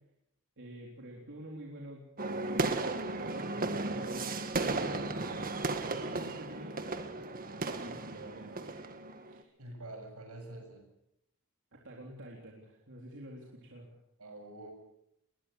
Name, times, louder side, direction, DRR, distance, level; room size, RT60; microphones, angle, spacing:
voice 1, 0.6-2.0 2.5-2.7 3.2-4.4 4.7-6.8 7.6-8.9 9.3-9.5 11.7-13.9, right 1 dB, 55° right, -2 dB, 3.7 m, -47 dB
sound 1, 2.2-9.4, right 2 dB, 40° right, 1.7 m, -35 dB
voice 2, 9.6-10.9 14.2-14.7, right 1 dB, 75° right, 5 dB, 7.0 m, -46 dB
21.5 x 21.0 x 6.7 m, 0.78 s
head